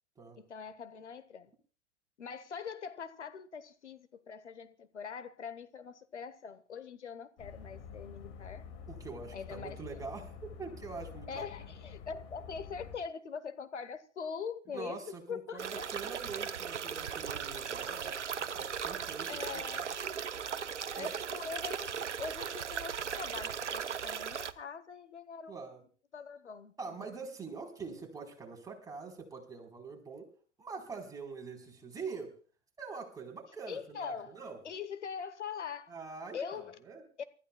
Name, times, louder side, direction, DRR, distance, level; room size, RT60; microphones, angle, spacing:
voice 1, 0.4-1.5 2.2-8.6 9.3-10.0 11.3-15.9 19.3-19.9 21.0-21.9 22.2-25.5 26.1-27.1 33.7-34.4 34.6-36.0 36.3-36.8 37.2-37.3, left 6 dB, 75° left, 1.1 m, -43 dB
sound 1, 7.4-13.0, left 6 dB, 35° left, 2.5 m, -48 dB
voice 2, 8.9-11.5 14.7-19.6 20.9-21.1 25.5-25.8 26.8-30.3 30.6-32.3 32.8-34.6 35.9-37.0, right 4 dB, 10° right, 4.0 m, -44 dB
sound 2, 15.6-24.5, right 7 dB, 75° right, 0.9 m, -37 dB
28.5 x 14.5 x 2.3 m
figure-of-eight pair, 100°, 36 cm